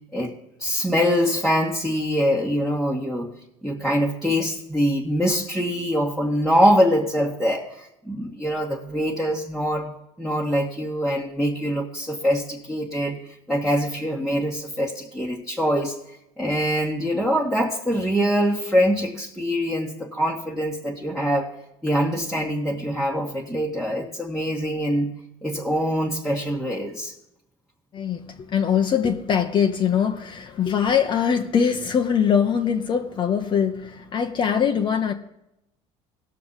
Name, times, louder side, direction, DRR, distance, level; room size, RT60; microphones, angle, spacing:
voice 1, 0.6-3.3 3.6-16.0 16.4-21.5 21.8-25.1 25.4-27.1, equal, ahead, 1.3 m, -24 dB
voice 2, 27.9-35.1, left 7 dB, 40° left, 0.8 m, -22 dB
18.5 x 6.6 x 4.0 m
cardioid pair, 120°, 13 cm